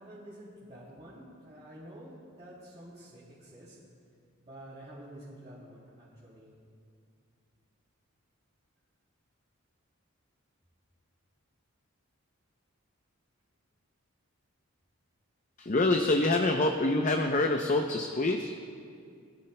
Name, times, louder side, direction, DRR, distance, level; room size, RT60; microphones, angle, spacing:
voice 1, 0.0-3.8 4.4-6.5, right 1 dB, 30° right, -9 dB, 3.0 m, -49 dB
voice 2, 15.6-18.5, left 2 dB, 35° left, 4 dB, 0.5 m, -26 dB
23.5 x 14.5 x 2.2 m, 2.3 s
head